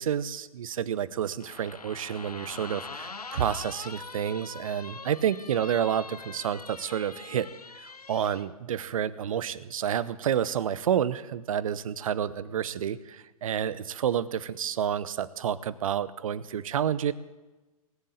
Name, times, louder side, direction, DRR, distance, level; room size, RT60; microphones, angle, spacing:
voice 1, 0.0-7.5 7.7-17.1, right 9 dB, 65° right, 17 dB, 0.8 m, -29 dB
sound 1, 1.4-8.5, left 4 dB, 90° left, 0.8 m, -43 dB
19.5 x 7.6 x 8.5 m, 1.2 s
figure-of-eight pair, 110°, 19 cm